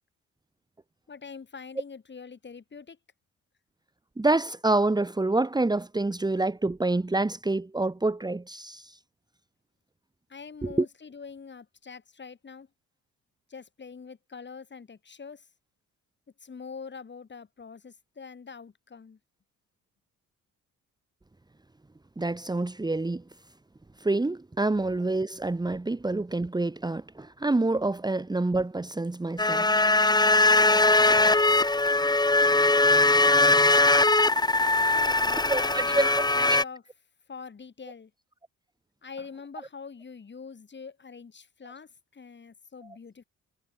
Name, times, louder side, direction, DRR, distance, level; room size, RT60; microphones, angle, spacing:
voice 1, 1.1-3.0 10.3-12.7 13.5-15.5 16.4-19.2 34.9-36.8 37.3-38.1 39.0-43.2, left 5 dB, 35° left, 7.8 m, -44 dB
voice 2, 4.2-9.0 10.6-10.8 22.2-23.2 24.0-29.7 35.5-36.1, right 2 dB, 15° right, 1.7 m, -27 dB
sound 1, 29.4-36.6, left 2 dB, 15° left, 2.0 m, -21 dB
cardioid pair, 90°, 30 cm